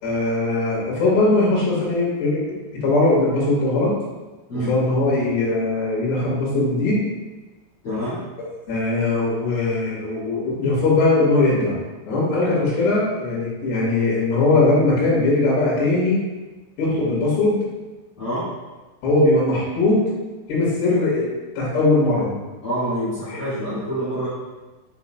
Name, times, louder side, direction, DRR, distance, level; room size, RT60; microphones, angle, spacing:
voice 1, 0.0-2.4 2.8-3.9 4.7-7.0 8.7-11.7 12.1-16.2 16.8-17.6 19.0-20.0 20.5-21.3 21.6-22.3 23.3-23.4, left 2 dB, 65° left, -5 dB, 3.8 m, -20 dB
voice 2, 7.8-8.2 18.2-18.5 22.6-24.3, equal, 40° left, -11 dB, 2.0 m, -26 dB
8.5 x 6.0 x 2.3 m, 1.2 s
omnidirectional pair, 5.4 m